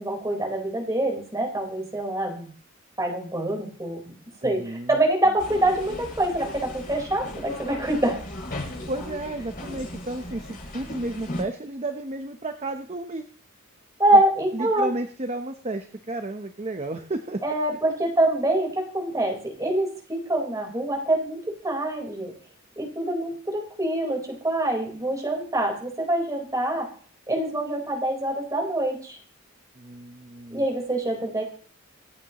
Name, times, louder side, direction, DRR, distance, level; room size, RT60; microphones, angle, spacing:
voice 1, 0.0-2.5 3.0-4.1 4.4-8.2 14.0-14.9 17.4-21.4 21.6-22.3 22.8-26.9 27.3-29.2 30.5-31.4, right 1 dB, 15° right, 1 dB, 4.2 m, -25 dB
voice 2, 4.4-4.9 8.9-13.3 14.5-17.4 29.8-30.7, right 2 dB, 30° right, 6 dB, 0.9 m, -32 dB
sound 1, 5.4-11.4, left 1 dB, 45° left, 6.6 m, -37 dB
26.0 x 8.9 x 3.0 m, 0.44 s
head